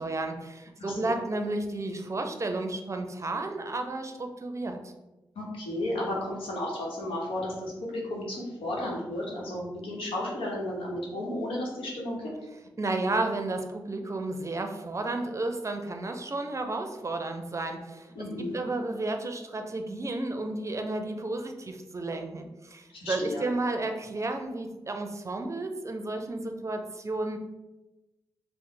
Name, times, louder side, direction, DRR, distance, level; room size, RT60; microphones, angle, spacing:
voice 1, 0.0-4.9 12.8-18.1 18.5-27.4, right 2 dB, 35° right, 5 dB, 0.5 m, -32 dB
voice 2, 0.8-1.2 5.3-12.3 18.1-18.6 22.9-23.5, left 1 dB, 85° left, -3 dB, 0.9 m, -33 dB
3.1 x 2.0 x 3.8 m, 1.0 s
supercardioid pair, 45°, 9 cm